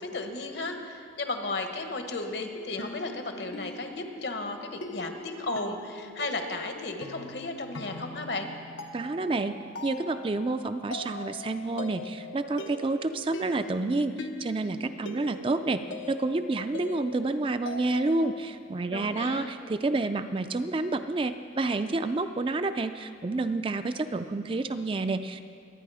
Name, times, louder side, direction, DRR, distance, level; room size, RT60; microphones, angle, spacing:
voice 1, 0.0-8.5 18.9-19.5, left 2 dB, 65° left, 5 dB, 1.3 m, -34 dB
sound 1, 2.5-18.4, left 2 dB, 80° left, 0.9 m, -42 dB
voice 2, 8.9-9.5 9.8-25.4, right 2 dB, 25° right, 9 dB, 0.4 m, -29 dB
23.0 x 9.4 x 4.9 m, 2.3 s
head